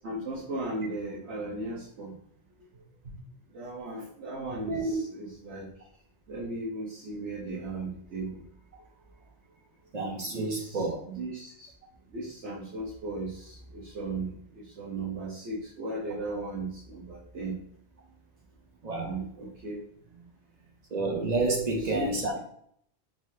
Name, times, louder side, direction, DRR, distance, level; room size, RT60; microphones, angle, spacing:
voice 1, 0.0-2.1 3.0-3.2 3.5-5.7 6.3-8.4 10.2-11.7 12.1-14.3 14.8-17.6 19.0-19.8 21.6-22.4, right 2 dB, 85° right, -7 dB, 1.1 m, -37 dB
voice 2, 4.7-5.0 9.9-11.0 18.8-19.1 20.9-22.4, right 2 dB, 50° right, 1 dB, 0.6 m, -29 dB
3.7 x 2.7 x 3.1 m, 0.67 s
omnidirectional pair, 1.2 m